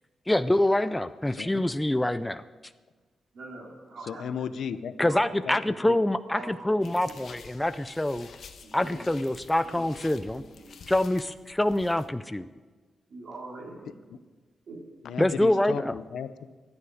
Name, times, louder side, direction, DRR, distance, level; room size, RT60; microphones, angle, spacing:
voice 1, 0.3-2.4 5.0-8.3 8.7-10.4 10.9-12.5 15.2-15.9, left 1 dB, 10° left, 12 dB, 0.4 m, -25 dB
voice 2, 1.3-1.6 4.1-4.9 5.5-5.6 5.8-6.0 15.0-16.5, left 7 dB, 85° left, 12 dB, 0.8 m, -35 dB
voice 3, 3.3-4.3 5.0-5.2 6.3-7.1 8.6-9.0 9.6-10.8 13.1-14.2 14.7-14.8, right 2 dB, 55° right, -3 dB, 4.0 m, -44 dB
sound 1, 6.8-12.1, left 6 dB, 65° left, 1.2 m, -49 dB
25.5 x 9.7 x 5.0 m, 1.3 s
wide cardioid pair, 160°, 0 cm